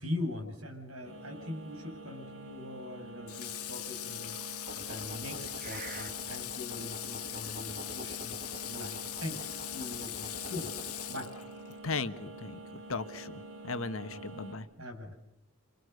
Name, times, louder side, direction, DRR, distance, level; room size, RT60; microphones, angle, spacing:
voice 1, 0.0-4.3 4.8-10.7 11.1-11.3 14.1-14.2 14.8-15.1, left 2 dB, 65° right, 3 dB, 6.8 m, -41 dB
sound 1, 1.0-14.6, right 1 dB, 85° right, 6.5 m, -47 dB
Water / Water tap faucet, 3.3-11.8, left 13 dB, 85° left, 1.5 m, -41 dB
sound 2, 4.7-11.3, right 2 dB, 40° right, 1.6 m, -47 dB
voice 2, 11.8-12.6 12.9-13.3 13.6-14.7, left 4 dB, 65° left, 11 dB, 1.4 m, -36 dB
29.0 x 27.5 x 6.7 m, 0.83 s
head